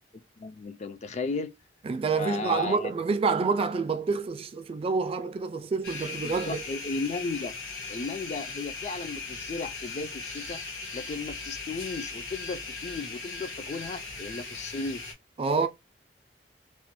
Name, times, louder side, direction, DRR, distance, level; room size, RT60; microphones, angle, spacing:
voice 1, 0.4-1.5 2.1-2.9 6.2-7.6 7.9-10.6 10.9-15.0, left 4 dB, 40° left, 0.4 m, -35 dB
voice 2, 1.9-6.6 15.4-15.7, right 4 dB, 35° right, 0.3 m, -27 dB
sound 1, 5.8-15.1, left 4 dB, 80° left, 1.5 m, -38 dB
3.0 x 2.2 x 2.9 m
head